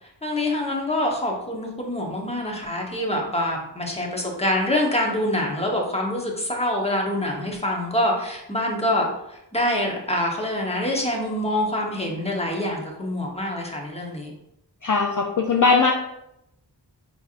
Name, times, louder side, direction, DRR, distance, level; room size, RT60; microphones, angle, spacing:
voice 1, 0.0-14.3, left 1 dB, 15° left, 0 dB, 0.9 m, -25 dB
voice 2, 14.8-15.9, left 4 dB, 50° left, 1 dB, 0.5 m, -19 dB
5.5 x 3.3 x 2.4 m, 0.82 s
wide cardioid pair, 60°, 41 cm